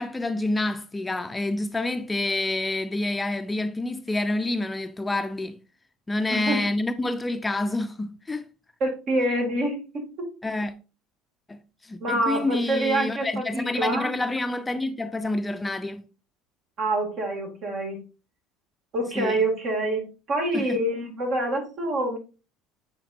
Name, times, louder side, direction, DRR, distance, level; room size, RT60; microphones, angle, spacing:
voice 1, 0.0-5.6 6.1-8.5 10.4-10.7 11.5-16.0 19.2-19.4 20.5-20.8, left 2 dB, 15° left, 0.5 m, -28 dB
voice 2, 6.3-6.6 8.8-10.3 12.0-14.1 16.8-18.0 18.9-22.2, right 1 dB, 55° right, 2.5 m, -26 dB
9.1 x 4.4 x 2.6 m
hypercardioid pair, 70°, 0 cm